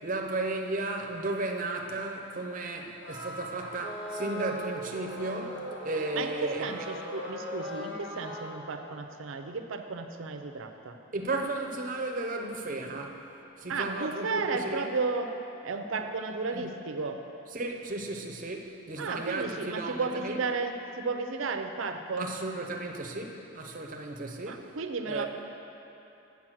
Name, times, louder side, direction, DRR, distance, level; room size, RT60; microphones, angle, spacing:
voice 1, 0.0-6.8 11.1-13.2 13.6-14.9 16.5-16.7 17.5-20.4 22.2-24.7 25.1-25.3, right 2 dB, 40° right, 3 dB, 0.7 m, -34 dB
sound 1, 3.0-8.5, equal, 70° left, 1.4 m, -39 dB
voice 2, 6.6-11.0 13.7-15.3 15.6-17.2 19.0-22.3 24.5-25.3, right 4 dB, 85° right, 6 dB, 0.6 m, -33 dB
8.5 x 5.9 x 6.3 m, 3.0 s
head